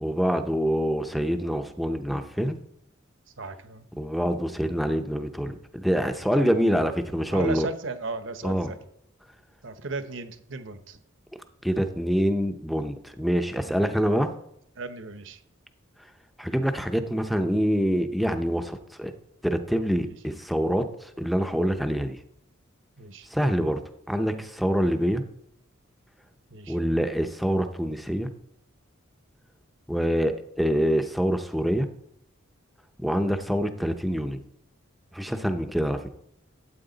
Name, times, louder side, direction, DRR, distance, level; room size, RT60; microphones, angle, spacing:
voice 1, 0.0-2.6 4.0-7.7 8.4-8.7 11.6-14.3 16.4-19.1 19.4-22.2 23.3-23.8 24.1-25.2 26.7-28.3 29.9-31.9 33.0-34.4 35.1-36.0, equal, ahead, 7 dB, 0.6 m, -25 dB
voice 2, 3.4-3.8 6.3-6.5 7.3-8.8 9.6-11.0 14.8-15.4 20.0-20.1 23.0-23.3 26.5-26.8, right 3 dB, 60° right, 10 dB, 0.9 m, -35 dB
12.5 x 8.5 x 4.0 m, 0.75 s
head